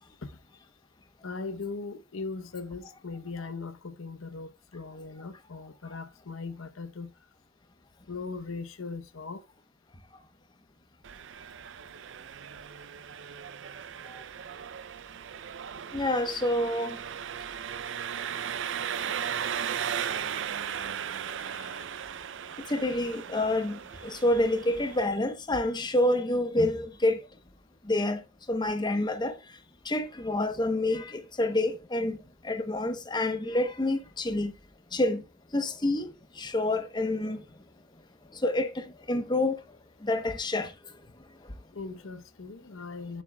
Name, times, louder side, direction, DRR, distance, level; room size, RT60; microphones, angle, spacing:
voice 1, 1.2-7.1 8.1-9.4 41.7-43.2, left 4 dB, 85° left, 0.9 m, -39 dB
Engine, 11.0-25.0, right 8 dB, 65° right, 0.5 m, -37 dB
voice 2, 15.9-17.0 22.7-27.2 27.9-28.2 28.5-29.3 29.9-32.2 32.4-34.5 34.9-35.2 35.5-36.1 36.4-37.4 38.4-39.6 40.0-40.7, left 1 dB, 20° left, 0.8 m, -28 dB
9.2 x 7.7 x 2.3 m
head